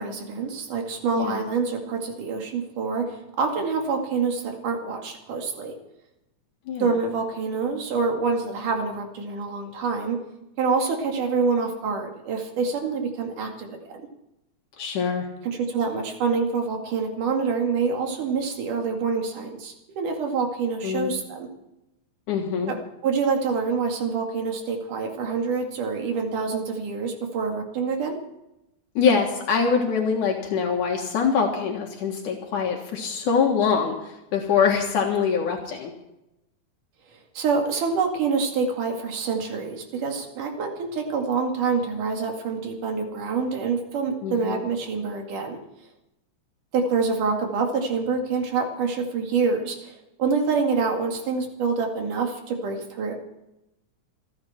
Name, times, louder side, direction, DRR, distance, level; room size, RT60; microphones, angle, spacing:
voice 1, 0.0-5.7 6.8-10.2 10.6-13.8 15.4-21.5 22.7-22.8 23.0-28.2 37.4-45.6 46.7-53.2, right 5 dB, 90° right, 2 dB, 3.8 m, -26 dB
voice 2, 6.7-7.0 14.8-15.3 20.8-21.1 22.3-22.7 29.0-35.9 44.2-44.6, left 6 dB, 75° left, 1 dB, 3.1 m, -24 dB
28.5 x 9.7 x 4.4 m, 0.89 s
omnidirectional pair, 3.5 m